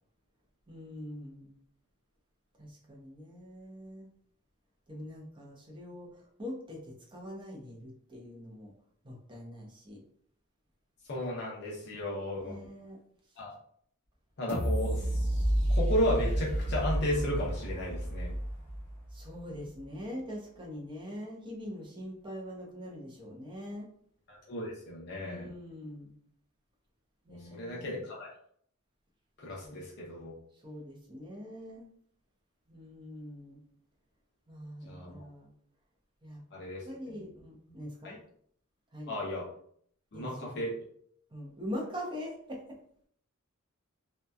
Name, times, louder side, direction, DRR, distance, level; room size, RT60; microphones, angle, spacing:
voice 1, 0.7-1.5 2.6-4.1 4.9-6.1 6.4-8.7 9.0-10.0 12.3-13.0 19.1-23.9 25.2-26.1 27.2-27.9 29.6-29.9 30.6-31.9 32.7-33.6 34.5-35.5 36.2-36.4 36.8-38.2 38.9-39.1 40.1-40.7 41.3-42.8, equal, 20° right, -2 dB, 0.7 m, -43 dB
voice 2, 11.1-12.6 13.4-13.5 14.4-15.1 15.7-18.3 24.3-25.5 27.3-28.3 29.4-30.3 34.9-35.2 36.5-37.2 38.0-38.1 39.1-39.5 40.1-40.8, left 1 dB, 55° left, -4 dB, 0.7 m, -34 dB
sound 1, 14.5-19.4 19.8-19.9, right 1 dB, 10° left, 0.9 m, -30 dB
2.7 x 2.2 x 2.3 m, 0.64 s
head